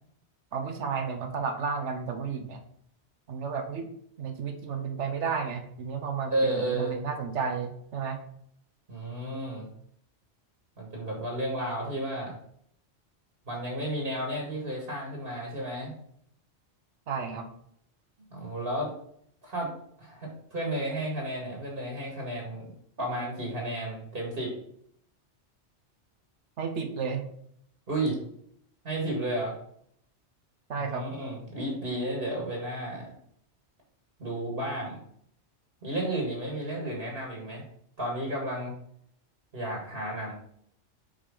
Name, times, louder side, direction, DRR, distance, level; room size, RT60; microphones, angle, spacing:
voice 1, 0.5-2.6 3.3-3.9 4.2-8.2 17.1-17.5 26.6-27.3 30.7-31.1, right 5 dB, 85° right, 5 dB, 1.2 m, -32 dB
voice 2, 6.3-6.9 8.9-9.7 10.8-12.3 13.5-15.9 18.3-18.9 19.4-19.7 20.0-22.7 23.0-24.5 27.9-28.2 28.8-29.5 30.8-33.1 34.2-35.0 35.8-37.7 38.0-38.7 39.5-40.3, right 1 dB, 55° right, -2 dB, 2.1 m, -32 dB
5.6 x 5.2 x 5.0 m, 0.67 s
omnidirectional pair, 1.2 m